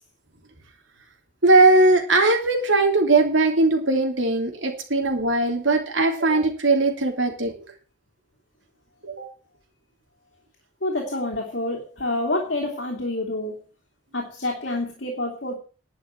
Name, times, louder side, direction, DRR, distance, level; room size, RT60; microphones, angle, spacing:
voice 1, 1.4-7.5 9.0-9.3, right 2 dB, 80° right, 3 dB, 3.1 m, -19 dB
voice 2, 10.8-13.6 14.1-15.6, left 2 dB, 60° left, 0 dB, 2.9 m, -27 dB
11.5 x 6.1 x 8.8 m, 0.38 s
head